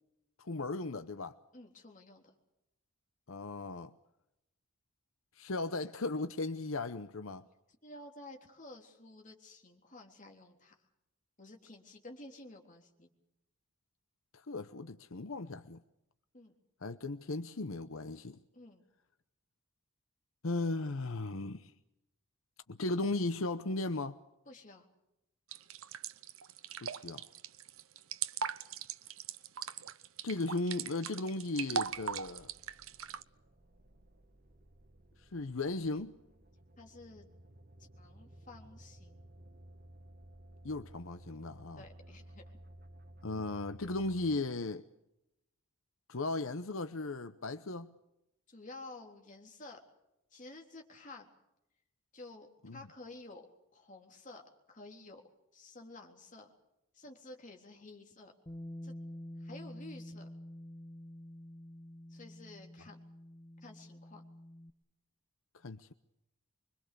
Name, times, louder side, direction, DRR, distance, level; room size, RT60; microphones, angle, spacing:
voice 1, 0.4-1.3 3.3-3.9 5.4-7.5 14.3-15.8 16.8-18.4 20.4-21.7 22.7-24.2 26.8-27.2 30.2-32.5 35.2-36.1 40.6-41.8 43.2-44.8 46.1-47.9 52.6-52.8 65.6-65.9, left 2 dB, 75° left, 0.9 m, -36 dB
voice 2, 1.5-2.3 7.8-10.8 11.4-13.1 16.3-16.6 18.5-18.9 24.5-24.9 36.8-37.3 37.8-39.3 41.8-42.6 48.5-49.8 50.3-51.3 52.1-53.5 53.7-55.2 55.5-56.5 56.9-58.3 58.8-59.0 59.4-60.3 62.1-63.0 63.6-64.2, left 2 dB, 35° left, 3.6 m, -52 dB
sound 1, 25.5-33.2, right 7 dB, 80° right, 0.9 m, -39 dB
sound 2, 31.8-44.4, right 1 dB, 45° right, 1.7 m, -56 dB
Bass guitar, 58.5-64.7, left 1 dB, 20° left, 0.9 m, -48 dB
25.5 x 23.5 x 6.9 m
head